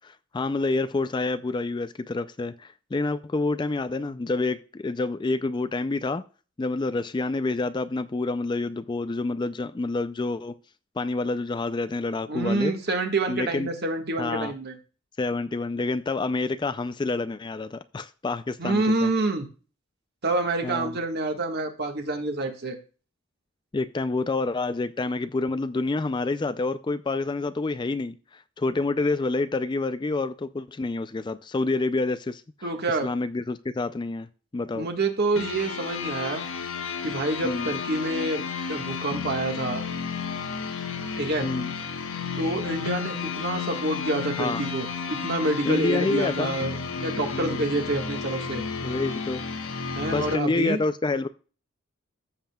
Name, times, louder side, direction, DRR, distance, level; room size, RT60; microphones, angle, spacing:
voice 1, 0.0-6.2 6.6-10.5 11.0-12.7 13.3-13.7 14.2-14.5 15.2-19.1 20.6-20.9 23.7-32.4 33.0-34.3 34.5-34.9 37.4-37.7 41.4-41.7 44.4-44.6 45.7-46.6 47.3-47.6 48.8-49.4 49.8-51.3, left 3 dB, 20° left, 0.3 m, -28 dB
voice 2, 12.3-14.7 18.6-19.5 20.2-22.8 32.6-33.1 34.7-36.4 37.0-38.4 38.7-39.8 41.2-41.5 42.4-48.6 49.9-50.8, right 2 dB, 50° right, 1.5 m, -27 dB
sound 1, 35.4-50.4, left 5 dB, 70° left, 1.1 m, -32 dB
14.5 x 7.4 x 2.3 m
head